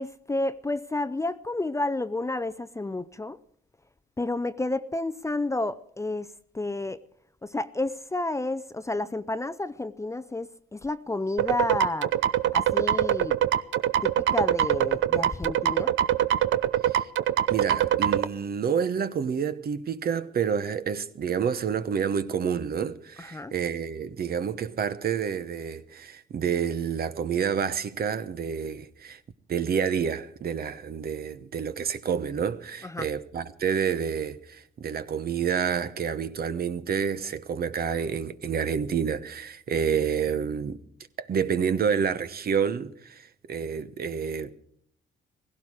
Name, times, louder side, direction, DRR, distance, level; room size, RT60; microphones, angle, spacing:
voice 1, 0.0-3.4 4.2-7.0 7.4-12.1 12.5-13.4 14.0-15.9 23.2-23.5 32.8-33.1, left 2 dB, 15° left, 0.5 m, -30 dB
sound 1, 11.4-18.2, right 11 dB, 70° right, 0.7 m, -23 dB
voice 2, 17.5-29.2 29.5-40.8 41.2-44.5, right 7 dB, 50° right, 1.0 m, -29 dB
16.5 x 16.5 x 4.9 m
cardioid pair, 90°, 20 cm